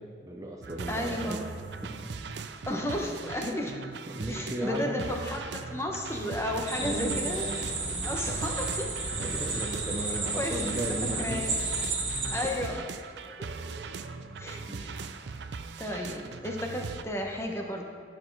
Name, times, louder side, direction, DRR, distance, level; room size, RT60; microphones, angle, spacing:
voice 1, 0.0-1.5 1.8-2.1 4.1-5.1 6.7-8.4 9.1-11.6 12.2-12.5 14.7-14.9, right 1 dB, 20° right, 0 dB, 0.6 m, -36 dB
sound 1, 0.6-17.0, right 4 dB, 65° right, 0.5 m, -40 dB
voice 2, 0.9-1.4 2.7-3.7 4.3-7.5 8.0-8.9 10.4-10.8 11.2-11.6 12.3-12.8 13.4-13.5 14.4-14.9 15.8-17.9, left 1 dB, 15° left, 1 dB, 0.9 m, -33 dB
sound 2, 6.7-12.5, right 3 dB, 35° right, 1.6 m, -32 dB
11.5 x 6.3 x 4.6 m, 2.4 s
head